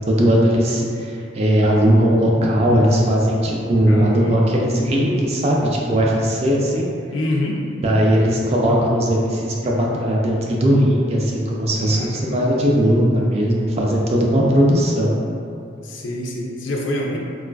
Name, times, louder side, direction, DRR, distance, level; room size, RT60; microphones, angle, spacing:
voice 1, 0.1-6.9 7.8-15.2, equal, 35° right, -2 dB, 0.3 m, -18 dB
voice 2, 3.9-4.3 7.1-7.6 11.7-12.4 15.8-17.2, left 1 dB, 80° left, -1 dB, 0.4 m, -26 dB
3.8 x 2.4 x 2.2 m, 2.5 s
head